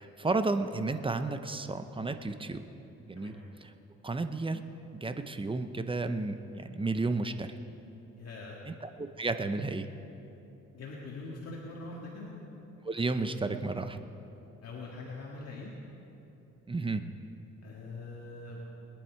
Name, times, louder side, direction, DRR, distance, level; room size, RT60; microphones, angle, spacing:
voice 1, 0.0-2.7 3.1-3.4 4.0-4.6 4.9-7.6 8.7-9.9 12.8-14.0 16.7-17.0, right 3 dB, 15° right, 9 dB, 0.8 m, -32 dB
voice 2, 8.2-8.6 10.7-12.3 14.6-15.7 17.6-18.6, left 3 dB, 55° left, -3 dB, 2.0 m, -43 dB
22.0 x 10.5 x 4.6 m, 3.0 s
cardioid pair, 90°, 30 cm